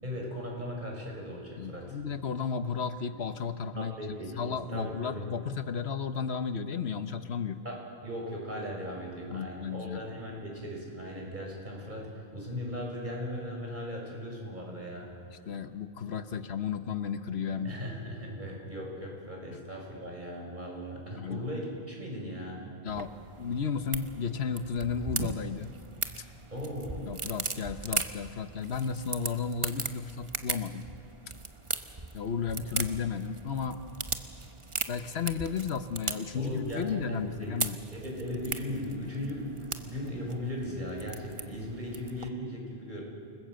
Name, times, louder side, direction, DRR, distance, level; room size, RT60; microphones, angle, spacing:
voice 1, 0.0-2.0 3.1-3.2 3.8-5.3 7.6-15.1 17.5-22.7 26.5-27.1 32.7-32.9 36.3-37.5 37.9-43.0, equal, 50° right, -1 dB, 6.1 m, -38 dB
voice 2, 1.6-3.9 4.4-7.6 9.3-10.0 15.5-17.8 21.2-21.5 22.8-23.1 23.4-25.7 27.1-30.9 32.1-34.1 34.9-37.8, left 6 dB, 80° left, 10 dB, 1.3 m, -33 dB
sound 1, 22.9-42.3, right 3 dB, 30° right, 1.1 m, -39 dB
28.5 x 20.0 x 7.7 m, 2.3 s
omnidirectional pair, 1.1 m